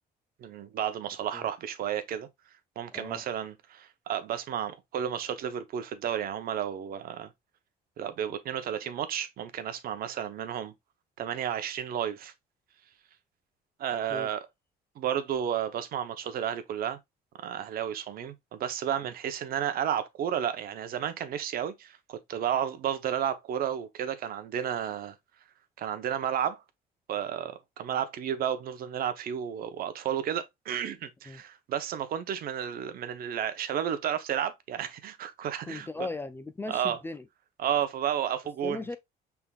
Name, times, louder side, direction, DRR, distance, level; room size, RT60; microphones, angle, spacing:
voice 1, 0.4-2.3 2.8-7.3 8.0-10.7 11.2-12.3 13.8-14.4 15.0-17.0 17.4-25.2 25.8-26.6 27.1-35.9 36.7-37.0 37.6-38.8, right 9 dB, 60° right, 0.8 m, -32 dB
voice 2, 2.9-3.2 14.1-14.3 31.3-31.4 35.6-37.3 38.6-39.0, left 2 dB, 15° left, 0.3 m, -37 dB
5.7 x 3.5 x 2.3 m
cardioid pair, 110°, 17 cm